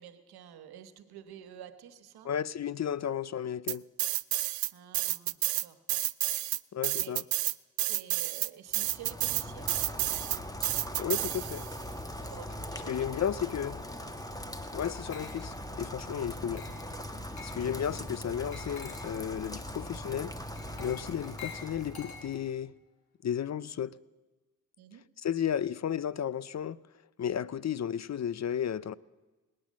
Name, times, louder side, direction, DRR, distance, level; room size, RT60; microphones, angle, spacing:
voice 1, 0.0-2.3 4.7-5.8 7.0-7.2 7.9-9.8 12.2-13.5 24.8-25.0, right 9 dB, 90° right, 1.1 m, -49 dB
voice 2, 2.2-3.8 6.7-7.2 11.0-11.7 12.9-13.8 14.7-16.7 17.4-20.3 20.8-22.7 23.2-24.0 25.2-26.8 27.2-28.9, left 9 dB, 45° left, 0.6 m, -33 dB
sound 1, 3.7-4.7 4.9-11.8, right 15 dB, 70° right, 0.5 m, -30 dB
Rain, 8.7-22.5, left 1 dB, 10° left, 1.7 m, -41 dB
Glass, 14.8-15.7 16.6-17.0 17.4-17.7 18.5-19.2 20.6-22.6, left 6 dB, 85° left, 2.1 m, -48 dB
19.5 x 9.7 x 7.4 m
supercardioid pair, 45°, 37 cm